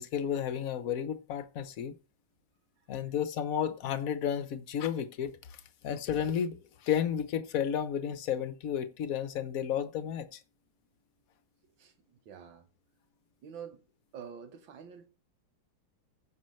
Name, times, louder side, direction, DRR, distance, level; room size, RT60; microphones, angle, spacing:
voice 1, 0.0-2.0 2.9-6.6 6.8-10.4, left 9 dB, 55° left, 1.2 m, -32 dB
voice 2, 11.8-12.7 13.4-13.8 14.1-15.1, right 7 dB, 75° right, 2.0 m, -47 dB
16.0 x 5.8 x 3.2 m
omnidirectional pair, 2.1 m